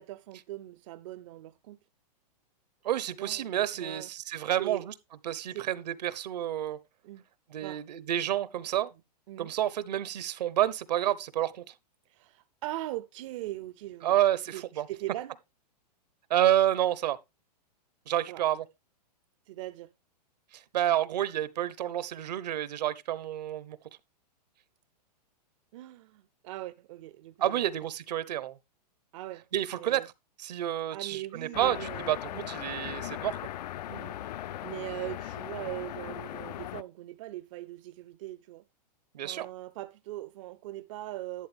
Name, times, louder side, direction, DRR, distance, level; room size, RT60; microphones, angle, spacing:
voice 1, 0.0-1.8 3.2-4.1 4.6-4.8 5.5-5.7 7.0-7.2 7.6-7.8 9.3-9.5 12.1-14.2 14.5-15.4 18.3-18.4 19.5-19.9 25.7-27.7 29.1-29.4 29.7-30.1 30.9-32.5 33.9-38.6 39.2-41.5, right 16 dB, 50° right, 0.6 m, -40 dB
voice 2, 2.8-4.9 5.2-6.8 7.5-8.9 9.4-11.7 14.0-14.9 16.3-17.2 18.1-18.6 20.5-23.8 27.4-28.6 29.5-30.0 30.4-32.2 32.5-33.4 39.1-39.5, right 12 dB, 75° right, 1.0 m, -29 dB
sound 1, 31.5-36.8, left 13 dB, 70° left, 0.5 m, -38 dB
11.5 x 7.7 x 3.3 m
hypercardioid pair, 140°, 21 cm